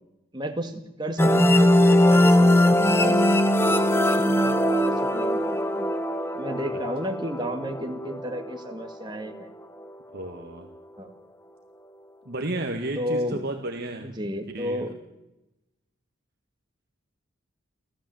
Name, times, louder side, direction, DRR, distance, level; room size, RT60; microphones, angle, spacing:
voice 1, 0.3-5.9 6.3-9.5 11.0-11.1 13.0-13.4 14.0-14.9, equal, 20° right, 4 dB, 2.2 m, -33 dB
sound 1, 1.2-8.6, left 1 dB, 10° left, 1.0 m, -20 dB
voice 2, 10.1-10.7 12.3-14.1 14.5-14.9, right 2 dB, 50° right, 3 dB, 1.7 m, -32 dB
29.5 x 13.5 x 7.8 m, 0.95 s
head